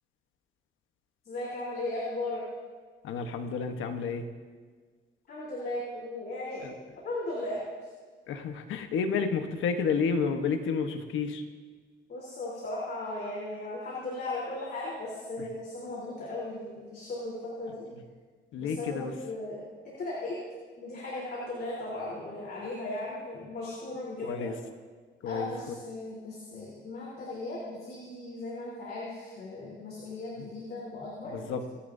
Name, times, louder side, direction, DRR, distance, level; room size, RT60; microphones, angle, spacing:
voice 1, 1.2-2.4 5.3-6.7 7.0-7.6 12.1-17.8 18.6-20.4 20.8-24.5 25.2-31.6, left 2 dB, 50° left, -5 dB, 3.8 m, -37 dB
voice 2, 3.0-4.3 6.6-6.7 8.3-11.4 18.5-19.1 24.2-24.5 25.2-25.5 31.3-31.6, left 5 dB, 85° left, 6 dB, 1.2 m, -30 dB
27.0 x 10.0 x 2.7 m, 1.5 s
cardioid pair, 90°, 20 cm